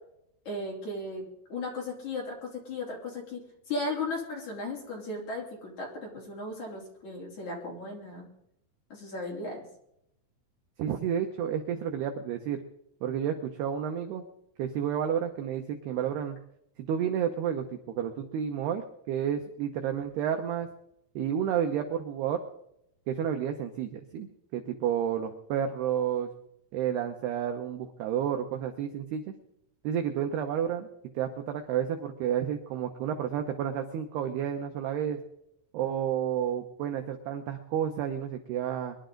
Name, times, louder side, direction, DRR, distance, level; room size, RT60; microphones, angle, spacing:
voice 1, 0.5-1.2 1.5-8.3 8.9-9.6, left 2 dB, 40° left, -2 dB, 4.2 m, -36 dB
voice 2, 10.8-12.6 13.0-14.2 14.6-16.4 16.9-20.7 21.2-22.4 23.1-26.3 26.7-29.3 29.8-30.9 31.1-35.2 35.7-39.0, right 9 dB, 85° right, 5 dB, 2.3 m, -31 dB
23.5 x 11.5 x 3.9 m, 0.77 s
omnidirectional pair, 6.0 m